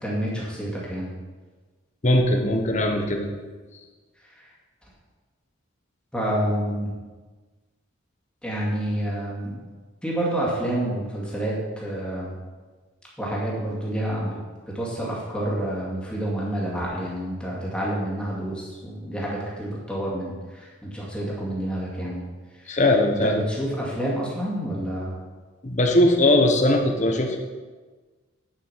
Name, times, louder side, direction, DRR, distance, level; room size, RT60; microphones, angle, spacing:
voice 1, 0.0-1.1 4.4-4.5 6.1-6.9 8.4-9.6 10.0-12.3 13.2-14.4 14.7-22.2 22.6-22.8 23.2-25.1, right 1 dB, 5° left, -5 dB, 2.2 m, -28 dB
voice 2, 2.0-3.3 22.7-23.3 25.6-27.4, left 1 dB, 35° left, 3 dB, 1.0 m, -20 dB
10.5 x 5.6 x 5.7 m, 1.3 s
head